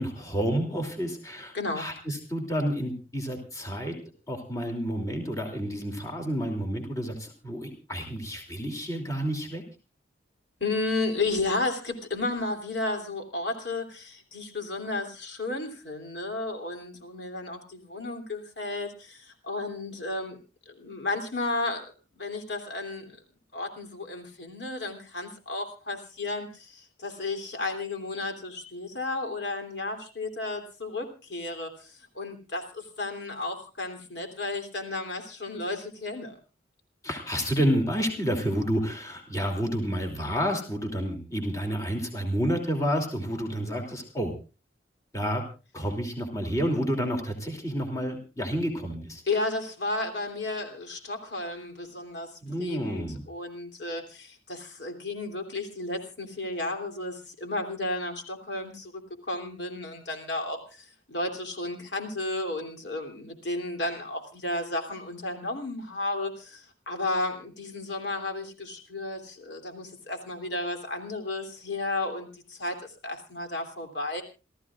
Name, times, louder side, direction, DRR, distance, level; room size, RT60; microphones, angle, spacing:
voice 1, 0.0-3.9 4.3-9.6 37.0-44.3 45.1-45.4 45.7-49.2 52.4-53.2, equal, 20° left, 2 dB, 2.9 m, -30 dB
voice 2, 1.5-1.9 10.6-20.4 20.7-21.8 22.1-23.2 23.5-36.4 49.3-52.3 52.6-58.9 59.2-74.2, left 2 dB, 65° left, 4 dB, 3.1 m, -33 dB
29.0 x 14.0 x 2.5 m, 0.33 s
head